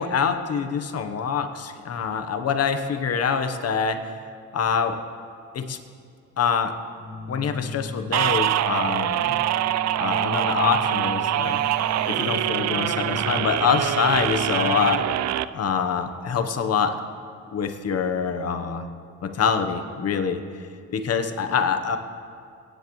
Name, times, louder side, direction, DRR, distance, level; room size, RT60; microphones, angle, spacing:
voice 1, 0.0-4.0 4.5-5.0 5.5-5.8 6.4-6.7 7.3-9.4 10.0-11.6 12.1-15.0 15.5-17.0 17.5-18.8 19.2-20.4 20.9-22.0, left 6 dB, 55° left, 7 dB, 1.1 m, -25 dB
Keyboard (musical), 7.0-15.3, left 3 dB, 35° left, 3.4 m, -36 dB
sound 1, 8.1-15.4, right 13 dB, 60° right, 0.4 m, -24 dB
23.5 x 10.0 x 3.2 m, 2.3 s
cardioid pair, 90°, 30 cm